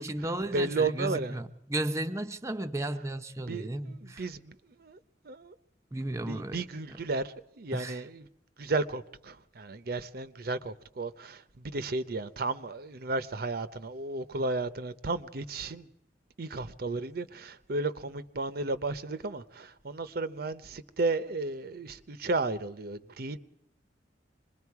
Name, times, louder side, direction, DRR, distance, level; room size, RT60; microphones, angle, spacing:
voice 1, 0.0-4.3 5.9-6.6 7.7-8.0, right 1 dB, 15° right, 0.7 m, -34 dB
voice 2, 0.5-1.4 3.4-5.0 5.2-5.5 6.3-8.3 8.6-15.9 16.4-23.4, right 3 dB, 60° right, 0.7 m, -33 dB
26.0 x 21.0 x 4.8 m
head